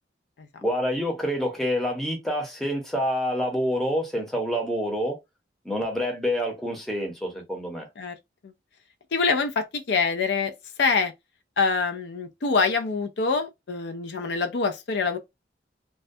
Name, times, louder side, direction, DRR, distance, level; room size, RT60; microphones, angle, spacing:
voice 1, 0.6-5.2 5.6-7.9, equal, ahead, 0.7 m, -27 dB
voice 2, 9.1-10.5 10.8-11.1 11.6-15.2, left 4 dB, 70° left, 0.4 m, -25 dB
2.3 x 2.1 x 2.6 m
head